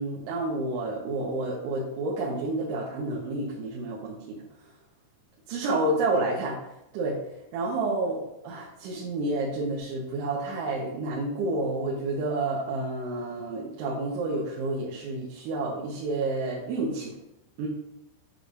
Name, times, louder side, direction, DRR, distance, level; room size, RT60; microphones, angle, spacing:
voice 1, 0.0-4.4 5.5-6.6 6.9-7.2 7.5-17.2 17.6-17.7, right 2 dB, 85° right, -5 dB, 3.5 m, -29 dB
10.0 x 5.0 x 2.5 m, 0.90 s
omnidirectional pair, 5.3 m